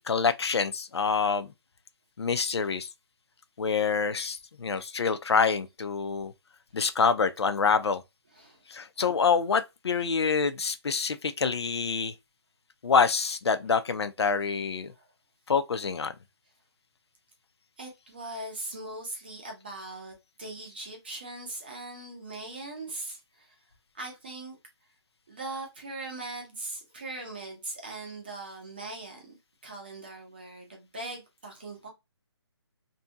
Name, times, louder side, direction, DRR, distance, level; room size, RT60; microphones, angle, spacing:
voice 1, 0.0-1.5 2.2-2.9 3.6-6.3 6.7-8.0 8.7-12.1 12.8-14.9 15.5-16.1, left 5 dB, 70° left, 0.4 m, -26 dB
voice 2, 17.8-23.5 23.9-24.6 25.3-29.4 29.6-31.9, right 2 dB, 20° right, 0.6 m, -40 dB
2.7 x 2.6 x 2.2 m
hypercardioid pair, 175°, 14 cm